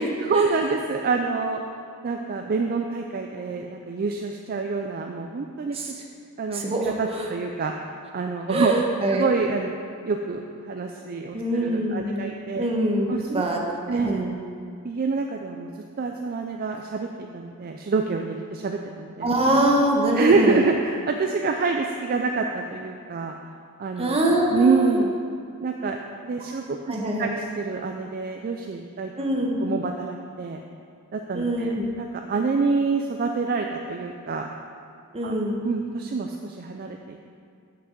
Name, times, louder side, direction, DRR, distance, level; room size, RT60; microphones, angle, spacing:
voice 1, 0.2-1.6 2.0-5.8 6.4-7.7 8.1-8.7 9.1-9.8 10.0-12.7 13.1-13.5 13.9-14.3 14.8-15.7 16.0-19.3 20.1-23.3 23.8-24.1 24.5-25.2 25.6-30.6 31.1-34.5 35.2-35.3 35.6-37.2, right 4 dB, 45° right, 3 dB, 0.4 m, -27 dB
voice 2, 6.5-7.3 8.5-9.3 11.3-12.3 12.6-13.6 13.9-14.3 19.2-20.6 24.0-25.0 26.9-27.3 29.2-29.6 31.3-31.9 35.1-35.6, right 1 dB, 25° right, 0 dB, 1.0 m, -24 dB
6.2 x 6.0 x 7.2 m, 2.4 s
head